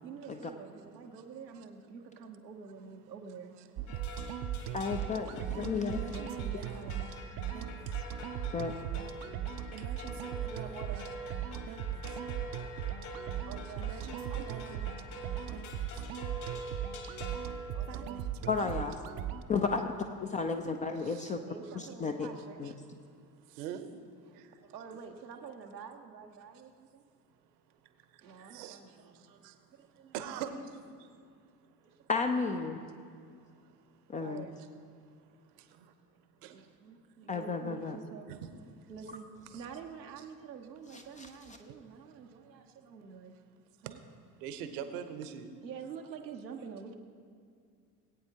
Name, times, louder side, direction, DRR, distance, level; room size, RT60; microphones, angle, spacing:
voice 1, 0.0-3.5 5.5-7.0 9.3-10.0 10.4-11.1 13.5-14.0 14.3-14.9 17.7-18.3 21.4-22.7 24.2-27.0 28.2-30.1 31.8-32.1 34.2-34.6 35.6-35.7 36.5-38.3 38.9-39.3 39.5-43.3 43.8-44.0 45.6-47.0, right 6 dB, 90° right, 3 dB, 0.9 m, -47 dB
sound 1, 3.8-19.4, right 9 dB, 45° right, 0.6 m, -38 dB
sound 2, 3.9-18.3, equal, 55° left, 1.8 m, -46 dB
voice 2, 4.7-6.0 8.5-8.7 18.5-19.0 19.5-19.9 20.2-21.4 22.0-22.3 22.6-22.7 32.1-32.8 34.1-34.5 37.3-38.0 41.2-41.3, left 4 dB, 20° left, 5 dB, 0.3 m, -32 dB
voice 3, 21.0-21.3 23.6-23.9 28.4-28.8 29.4-29.5 30.1-30.5 36.4-36.5 38.3-38.5 39.5-39.6 43.9-44.0 44.4-45.5, right 9 dB, 65° right, 9 dB, 1.0 m, -40 dB
19.5 x 8.6 x 2.9 m, 2.3 s
figure-of-eight pair, 65°, 50 cm